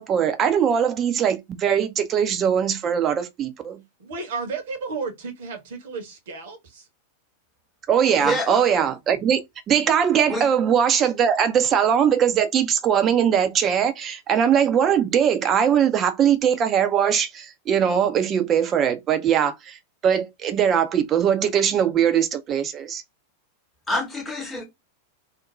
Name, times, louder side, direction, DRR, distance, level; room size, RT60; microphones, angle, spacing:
voice 1, 0.0-3.8 7.9-19.8 20.0-23.0, right 8 dB, 30° right, 0.5 m, -21 dB
voice 2, 4.0-6.9, right 4 dB, 55° right, 0.9 m, -33 dB
voice 3, 8.2-8.7 10.3-10.5 23.9-24.6, left 1 dB, 10° left, 0.9 m, -27 dB
2.5 x 2.1 x 3.0 m
figure-of-eight pair, 90°, 0 cm